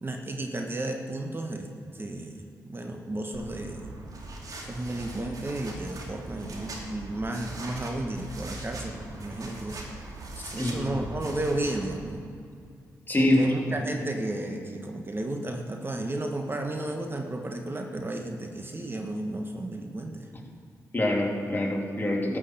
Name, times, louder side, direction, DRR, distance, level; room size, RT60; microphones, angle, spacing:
voice 1, 0.0-3.9 4.6-9.8 10.5-12.2 13.2-20.3, right 1 dB, 30° right, 3 dB, 1.4 m, -33 dB
sound 1, 3.3-11.9, right 2 dB, 60° right, 2.6 m, -40 dB
voice 2, 10.4-10.9 13.1-13.6 20.9-22.4, left 1 dB, 30° left, -1 dB, 2.9 m, -25 dB
13.0 x 6.3 x 8.0 m, 2.3 s
supercardioid pair, 50°, 7 cm